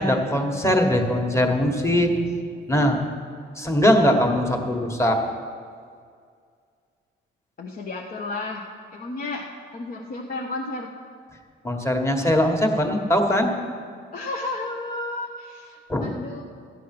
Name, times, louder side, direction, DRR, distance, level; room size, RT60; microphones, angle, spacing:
voice 1, 0.0-2.1 2.7-3.0 3.5-5.2 11.6-13.5 15.9-16.1, left 1 dB, 15° left, 3 dB, 1.6 m, -21 dB
voice 2, 7.6-8.6 8.9-9.4 9.7-10.9 14.1-16.4, left 2 dB, 45° left, -1 dB, 1.1 m, -32 dB
13.5 x 8.2 x 6.1 m, 2.2 s
cardioid pair, 90°, 20 cm